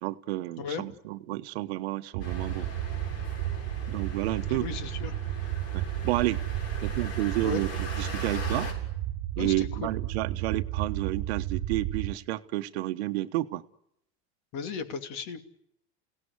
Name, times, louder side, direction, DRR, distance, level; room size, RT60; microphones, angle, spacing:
voice 1, 0.0-2.7 3.9-4.7 5.7-6.4 6.8-8.7 9.4-13.6, right 17 dB, 85° right, 8 dB, 1.1 m, -31 dB
sound 1, 2.1-12.1, right 13 dB, 60° right, 1.3 m, -33 dB
sound 2, 2.2-8.7, left 2 dB, 75° left, 8.0 m, -40 dB
voice 2, 4.5-5.1 7.4-7.6 9.4-9.9 14.5-15.4, left 6 dB, 60° left, 7 dB, 2.8 m, -35 dB
29.5 x 17.5 x 9.7 m, 0.81 s
supercardioid pair, 125°, 31 cm